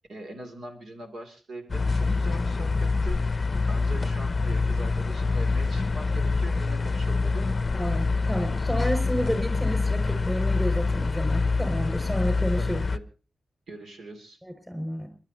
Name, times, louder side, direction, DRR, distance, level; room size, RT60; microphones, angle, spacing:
voice 1, 0.1-7.6 12.6-13.0 13.7-14.4, right 2 dB, 80° right, 4 dB, 3.0 m, -42 dB
sound 1, 1.7-13.0, left 3 dB, 35° left, 0.6 m, -25 dB
voice 2, 7.7-12.8 14.4-15.1, equal, 5° right, 6 dB, 6.2 m, -30 dB
30.0 x 12.0 x 2.9 m, 0.34 s
wide cardioid pair, 120°, 0 cm